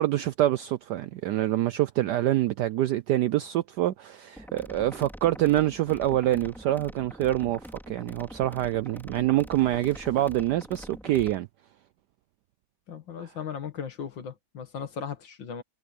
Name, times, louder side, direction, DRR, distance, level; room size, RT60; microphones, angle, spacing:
voice 1, 0.0-11.5, right 14 dB, 75° right, 0.9 m, -26 dB
sound 1, 4.4-11.4, equal, ahead, 2.6 m, -44 dB
voice 2, 12.9-15.6, left 7 dB, 65° left, 2.4 m, -37 dB
omnidirectional pair, 2.2 m